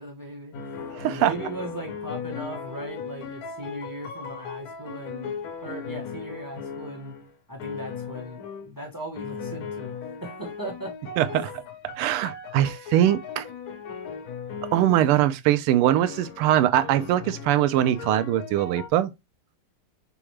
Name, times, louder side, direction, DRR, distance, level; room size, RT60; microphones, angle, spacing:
voice 1, 0.0-0.8 1.0-5.3 5.6-7.2 7.5-10.9, right 1 dB, 35° right, 0.3 m, -38 dB
sound 1, 0.5-7.3 7.6-8.7 9.2-15.2 15.8-18.9, left 6 dB, 80° left, 0.8 m, -37 dB
voice 2, 0.9-1.3 11.2-11.6 12.0-13.5 14.7-19.1, right 12 dB, 85° right, 1.5 m, -22 dB
3.9 x 3.5 x 3.1 m
omnidirectional pair, 2.4 m